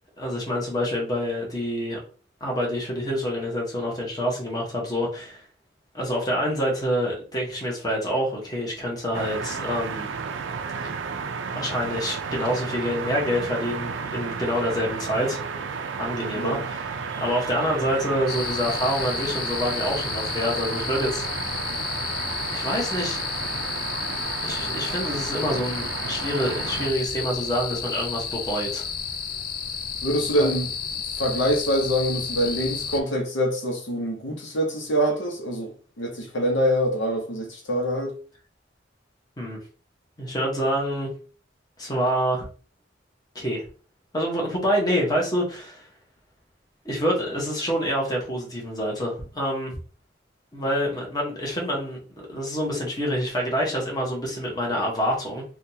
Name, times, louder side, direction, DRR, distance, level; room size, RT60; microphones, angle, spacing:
voice 1, 0.2-2.0 2.4-5.4 5.9-10.1 11.5-15.4 16.0-21.2 22.5-23.2 24.4-28.9 30.4-30.5 39.4-39.6 40.2-41.1 41.8-42.5 43.3-43.7 44.1-45.9 46.8-49.8 50.5-55.4, equal, 20° left, 1.1 m, -27 dB
sound 1, 9.1-26.9, right 5 dB, 85° right, 0.4 m, -32 dB
sound 2, 18.3-33.0, left 6 dB, 50° left, 0.4 m, -32 dB
voice 2, 30.0-30.7 31.2-35.7 36.0-38.1, equal, 75° left, 0.8 m, -25 dB
3.6 x 2.3 x 2.8 m
head